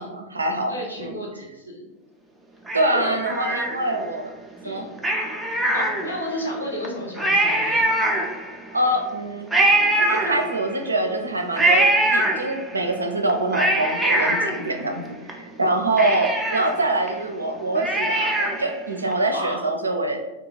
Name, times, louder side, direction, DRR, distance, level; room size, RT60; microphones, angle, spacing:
voice 1, 0.0-1.2 2.7-4.3 4.6-4.8 7.4-7.6 8.7-9.5 10.0-11.9 12.1-20.2, right 2 dB, 80° right, 4 dB, 0.4 m, -25 dB
voice 2, 0.6-1.9 2.9-3.2 4.6-4.9 5.7-7.9 19.3-19.6, equal, 80° left, -3 dB, 0.7 m, -32 dB
Cat, 2.7-4.1 5.0-6.4 6.8-6.9 7.2-8.7 9.5-10.9 11.6-12.8 13.3-15.3 15.6-15.7 16.0-18.8 19.1-19.2, right 1 dB, 5° right, 0.4 m, -22 dB
2.3 x 2.3 x 3.9 m, 1.0 s
figure-of-eight pair, 90°, 0 cm